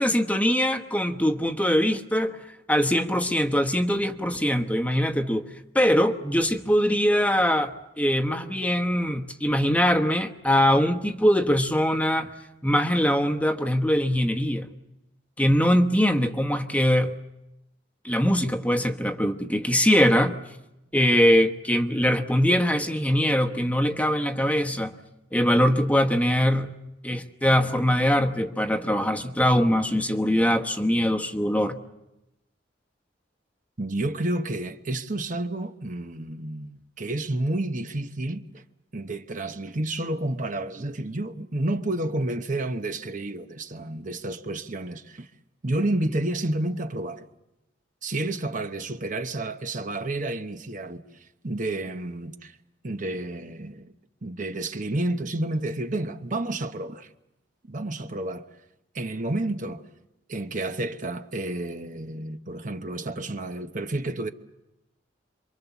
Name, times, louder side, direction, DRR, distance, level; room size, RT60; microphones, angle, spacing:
voice 1, 0.0-2.4 2.7-5.5 5.7-12.3 12.6-14.7 15.4-17.1 18.0-20.4 20.9-24.9 25.3-26.7 27.0-31.8, equal, 10° left, 1.1 m, -22 dB
voice 2, 33.8-38.6 38.9-45.3 45.6-47.3 48.0-51.0 51.4-52.6 52.8-53.9 54.2-57.1 57.7-58.5 58.9-59.8 60.3-64.3, right 2 dB, 45° right, 1.0 m, -30 dB
27.5 x 24.0 x 7.1 m
head